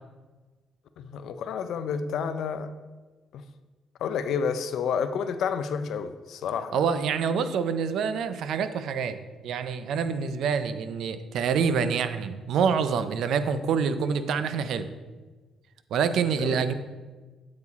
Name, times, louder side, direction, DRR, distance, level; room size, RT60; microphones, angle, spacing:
voice 1, 1.0-2.7 3.3-3.4 4.0-6.8 16.4-16.6, left 6 dB, 75° left, 10 dB, 0.5 m, -30 dB
voice 2, 6.7-9.2 9.4-14.9 15.9-16.7, right 6 dB, 75° right, 11 dB, 0.5 m, -26 dB
8.5 x 4.8 x 4.1 m, 1.3 s
cardioid pair, 90°, 0 cm